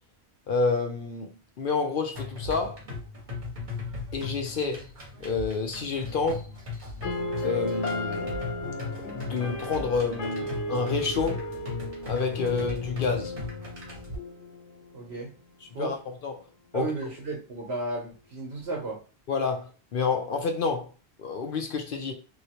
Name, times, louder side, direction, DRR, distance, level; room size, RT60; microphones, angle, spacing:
voice 1, 0.5-2.8 4.1-4.9 5.2-6.5 7.4-8.3 9.0-11.4 12.1-13.3 15.8-16.0 16.2-16.4 16.7-16.9 19.3-20.9 21.2-22.1, left 4 dB, 60° left, 0.7 m, -29 dB
sound 1, 2.2-14.2, left 4 dB, 45° right, 1.3 m, -38 dB
sound 2, 7.0-15.0, left 1 dB, 90° left, 1.0 m, -35 dB
voice 2, 14.9-15.3 15.7-16.0 16.7-19.0, right 2 dB, 70° right, 1.2 m, -33 dB
3.1 x 2.8 x 2.8 m
omnidirectional pair, 1.1 m